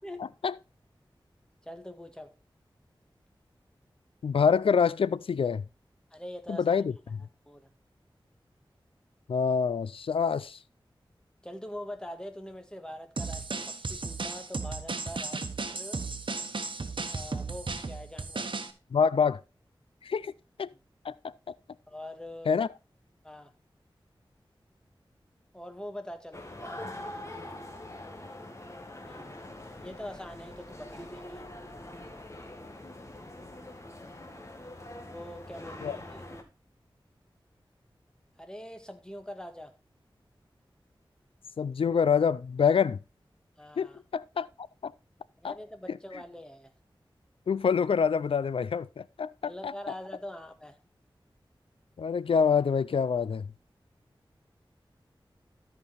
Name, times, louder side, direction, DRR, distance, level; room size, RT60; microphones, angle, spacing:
voice 1, 1.6-2.3 6.1-6.8 7.5-7.7 11.4-15.5 15.7-16.0 17.1-18.5 20.7-20.8 21.9-22.6 23.2-23.5 25.5-26.5 29.0-29.3 29.8-31.4 35.0-36.3 38.4-39.8 43.6-44.0 45.4-46.7 49.4-50.8, left 1 dB, 10° left, 1.8 m, -43 dB
voice 2, 4.2-5.6 6.5-7.2 9.3-10.6 18.9-19.4 20.0-20.3 20.6-20.7 21.0-21.6 22.5-22.7 35.8-36.0 41.6-43.0 43.8-43.9 44.1-44.5 44.8-44.9 45.4-45.5 45.9-46.0 47.5-49.7 52.0-53.5, left 6 dB, 90° left, 0.4 m, -26 dB
sound 1, 13.2-18.7, right 4 dB, 65° right, 1.2 m, -35 dB
sound 2, 26.3-36.4, left 1 dB, 30° left, 2.0 m, -44 dB
13.0 x 5.3 x 4.2 m
wide cardioid pair, 50°, 9 cm